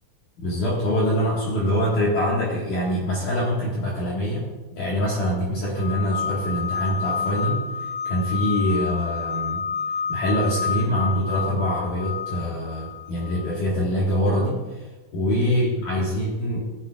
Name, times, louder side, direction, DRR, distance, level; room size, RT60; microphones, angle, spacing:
voice 1, 0.4-4.4 4.7-7.7 8.0-9.6 10.1-14.8 15.1-16.6, equal, 60° left, -5 dB, 2.9 m, -24 dB
sound 1, 5.8-13.6, left 6 dB, 80° left, 2.7 m, -29 dB
19.5 x 10.5 x 2.4 m, 1.2 s
omnidirectional pair, 4.7 m